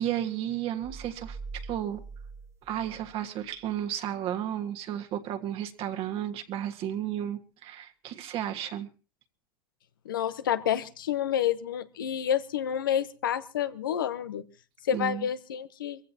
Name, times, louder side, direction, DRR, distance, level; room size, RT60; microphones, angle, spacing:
voice 1, 0.0-2.0 2.6-8.9 14.9-15.3, right 11 dB, 55° right, 1.6 m, -33 dB
sound 1, 0.8-3.8, right 4 dB, 25° right, 1.1 m, -44 dB
voice 2, 10.0-14.4 14.8-16.0, left 10 dB, 85° left, 0.9 m, -29 dB
24.0 x 15.5 x 2.8 m
hypercardioid pair, 80°, 11 cm